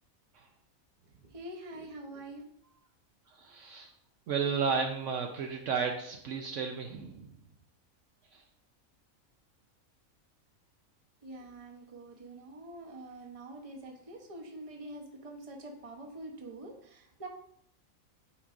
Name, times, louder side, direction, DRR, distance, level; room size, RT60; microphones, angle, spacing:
voice 1, 1.2-2.4 11.2-17.3, right 1 dB, 30° right, 2 dB, 0.8 m, -45 dB
voice 2, 3.3-3.9 4.3-7.3 8.3-8.4, right 5 dB, 70° right, 3 dB, 0.9 m, -33 dB
8.7 x 4.6 x 2.5 m, 0.69 s
omnidirectional pair, 1.4 m